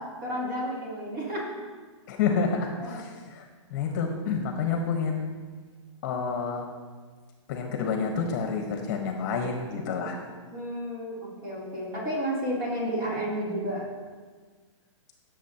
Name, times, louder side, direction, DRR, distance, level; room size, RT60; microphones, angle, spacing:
voice 1, 0.0-1.5 2.8-3.0 10.5-13.8, equal, 30° right, -5 dB, 3.5 m, -31 dB
voice 2, 2.1-3.4 3.7-5.3 6.0-6.7 7.5-10.2, left 5 dB, 40° left, 3 dB, 1.3 m, -29 dB
16.0 x 7.4 x 3.0 m, 1.5 s
hypercardioid pair, 160°, 16 cm